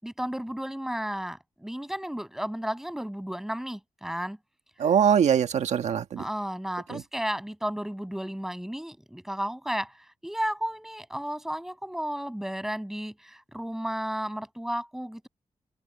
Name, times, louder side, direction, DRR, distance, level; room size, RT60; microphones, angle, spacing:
voice 1, 0.0-4.4 6.2-9.9 10.2-15.3, equal, 5° right, 7.8 m, -33 dB
voice 2, 4.8-6.3 6.9-7.0, right 8 dB, 85° right, 1.6 m, -23 dB
open air
wide cardioid pair, 150°, 11 cm